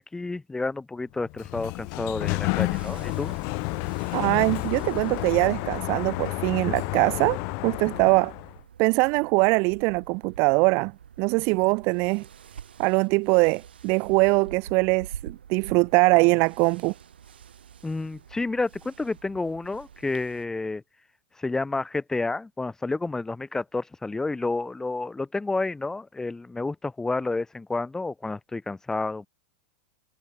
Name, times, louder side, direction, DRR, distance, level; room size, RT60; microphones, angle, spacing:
voice 1, 0.0-3.3 17.8-20.8 21.4-29.3, left 3 dB, 10° left, 2.7 m, -30 dB
Sliding door, 1.2-8.6, left 38 dB, 50° left, 2.5 m, -30 dB
sound 1, 2.5-20.5, right 8 dB, 80° right, 4.8 m, -47 dB
voice 2, 4.1-7.4 7.6-8.3 8.8-10.9 11.2-12.3 12.8-16.9, right 30 dB, 45° right, 0.3 m, -22 dB
hypercardioid pair, 105°, 5 cm